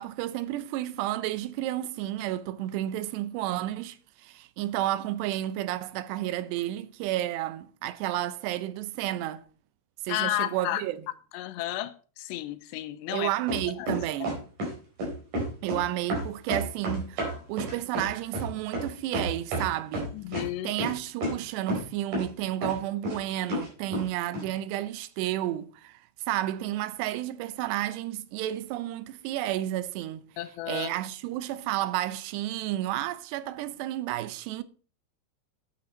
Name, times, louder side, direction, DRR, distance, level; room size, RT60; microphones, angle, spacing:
voice 1, 0.0-9.4 10.0-11.0 13.1-14.4 15.6-20.1 20.6-26.0 26.3-30.3 30.7-34.6, right 14 dB, 85° right, 2.8 m, -31 dB
voice 2, 10.1-10.8 11.3-13.3 13.8-13.9 20.1-20.7 30.4-31.0, left 15 dB, 85° left, 2.8 m, -32 dB
sound 1, 13.5-14.7 15.0-15.8 16.1-19.7 19.9-20.5 20.8-20.9 21.2-21.3 21.7-21.9 22.1-22.3 22.6-23.2 23.5-24.0 24.3-24.4, right 1 dB, 45° right, 5.7 m, -30 dB
10.5 x 8.6 x 4.3 m
omnidirectional pair, 4.9 m